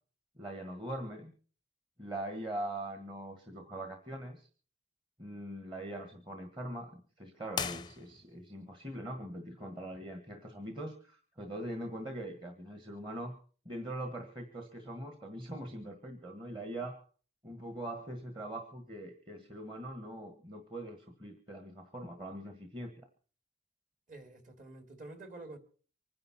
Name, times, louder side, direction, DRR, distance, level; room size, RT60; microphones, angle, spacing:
voice 1, 0.4-1.3 2.0-4.5 5.2-13.4 13.6-17.0 17.4-22.9, right 1 dB, 25° right, 1.6 m, -42 dB
sound 1, 7.5-8.5, left 6 dB, 25° left, 0.6 m, -39 dB
voice 2, 24.1-25.6, right 2 dB, 45° right, 2.7 m, -48 dB
25.0 x 10.5 x 4.3 m
head